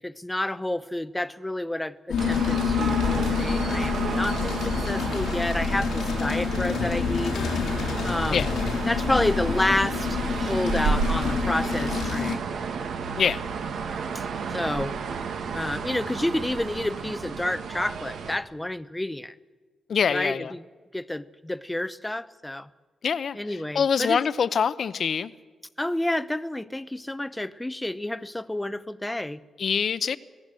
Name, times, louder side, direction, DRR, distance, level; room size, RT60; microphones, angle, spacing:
voice 1, 0.0-7.4 8.0-8.5 8.9-12.4 14.5-15.0 15.5-19.3 20.1-20.6 20.9-22.7 23.4-24.2 25.8-29.4, left 1 dB, 10° left, 15 dB, 0.7 m, -29 dB
sound 1, 2.1-12.3, left 6 dB, 90° left, 2.3 m, -27 dB
sound 2, 2.2-18.4, right 5 dB, 80° right, 1.7 m, -32 dB
voice 2, 19.9-20.5 23.0-25.3 29.6-30.2, left 6 dB, 60° left, 15 dB, 0.8 m, -25 dB
25.5 x 17.5 x 7.6 m, 1.4 s
wide cardioid pair, 125°, 0 cm